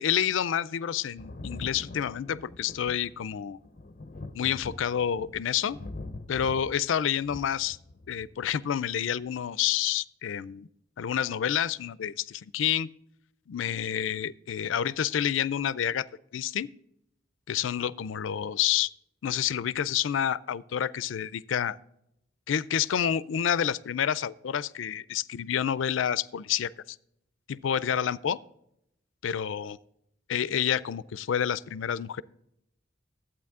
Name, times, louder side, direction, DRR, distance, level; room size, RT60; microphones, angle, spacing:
voice 1, 0.0-3.6 4.3-5.8 6.3-7.8 8.1-10.7 11.0-12.9 13.5-16.1 16.3-16.7 17.5-18.9 19.2-21.8 22.5-26.7 27.5-28.4 29.2-29.7 30.3-32.2, left 9 dB, 85° left, 20 dB, 0.4 m, -28 dB
Thunder, 1.2-8.5 9.6-9.7, left 2 dB, 45° left, 0.7 m, -43 dB
12.0 x 8.6 x 3.6 m, 0.77 s
head